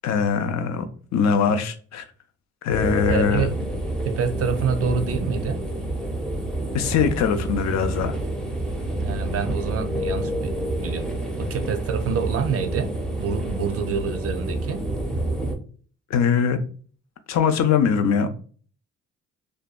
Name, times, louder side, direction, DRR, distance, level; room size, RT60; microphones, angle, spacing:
voice 1, 0.0-0.9 1.1-2.0 2.6-3.5 6.7-8.2 16.1-16.6 17.3-18.3, left 6 dB, 60° left, 8 dB, 0.5 m, -21 dB
sound 1, 2.7-15.6, right 1 dB, 5° left, 0.5 m, -28 dB
voice 2, 3.1-3.6 4.0-5.6 9.0-12.9 13.2-14.8, right 6 dB, 50° right, 7 dB, 0.5 m, -27 dB
2.6 x 2.2 x 2.3 m, 0.42 s
cardioid pair, 90°, 30 cm